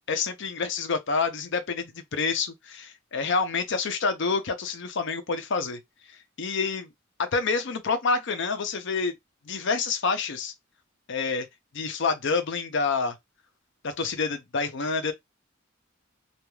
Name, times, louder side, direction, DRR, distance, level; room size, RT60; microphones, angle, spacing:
voice 1, 0.1-5.8 6.4-6.9 7.2-9.1 9.4-10.5 11.1-11.5 11.7-13.2 13.8-15.1, left 4 dB, 65° left, 0.6 m, -27 dB
2.5 x 2.3 x 3.1 m
head